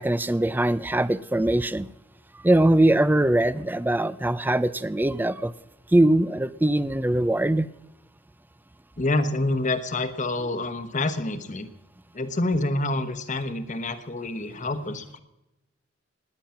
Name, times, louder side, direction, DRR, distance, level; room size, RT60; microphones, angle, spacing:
voice 1, 0.0-1.9 2.4-5.5 5.9-7.7, right 1 dB, 10° right, 17 dB, 0.4 m, -22 dB
voice 2, 9.0-11.7 12.1-15.2, left 2 dB, 40° left, 11 dB, 1.1 m, -27 dB
19.5 x 9.1 x 5.8 m, 0.94 s
head